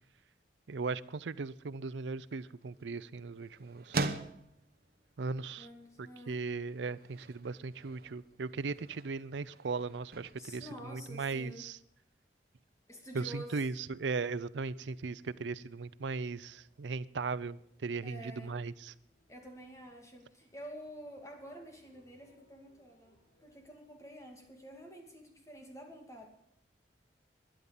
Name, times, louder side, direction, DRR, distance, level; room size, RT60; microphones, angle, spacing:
voice 1, 0.7-4.2 5.2-5.7 6.0-11.8 13.1-18.9, right 4 dB, 85° right, 16 dB, 0.5 m, -38 dB
sound 1, 1.9-11.7, right 3 dB, 55° right, 1.0 m, -44 dB
voice 2, 5.6-6.4 10.4-11.7 12.9-13.6 18.0-18.5 19.3-26.3, equal, 15° left, 2 dB, 2.5 m, -49 dB
sound 2, 15.0-23.8, left 1 dB, 55° left, 4.9 m, -70 dB
12.0 x 10.5 x 7.1 m, 0.71 s
head